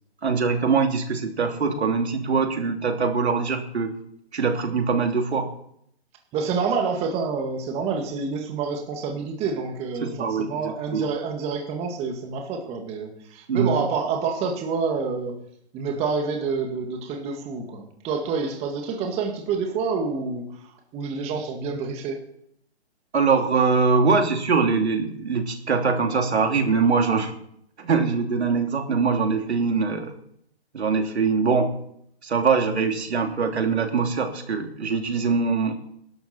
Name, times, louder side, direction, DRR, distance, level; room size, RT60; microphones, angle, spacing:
voice 1, 0.2-3.9 4.3-5.5 10.0-11.1 13.5-13.7 23.1-27.3 27.8-30.2 30.7-31.7 32.2-35.8, right 5 dB, 70° right, 4 dB, 2.9 m, -23 dB
voice 2, 6.3-15.4 15.7-22.2, right 5 dB, 20° right, 3 dB, 1.8 m, -28 dB
19.0 x 12.0 x 4.3 m, 0.72 s
hypercardioid pair, 145°, 33 cm